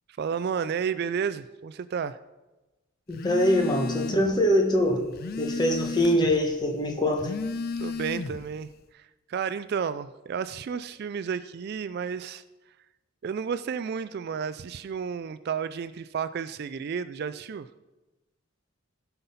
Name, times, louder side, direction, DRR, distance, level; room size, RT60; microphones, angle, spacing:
voice 1, 0.2-2.2 7.8-12.4 13.2-17.7, right 6 dB, 50° right, 14 dB, 0.3 m, -32 dB
Telephone, 3.1-4.4 4.8-6.4 7.1-8.6, left 3 dB, 45° left, 0.4 m, -33 dB
voice 2, 3.1-5.0 5.4-7.3, equal, 20° left, 2 dB, 1.3 m, -23 dB
16.5 x 5.7 x 5.6 m, 1.1 s
head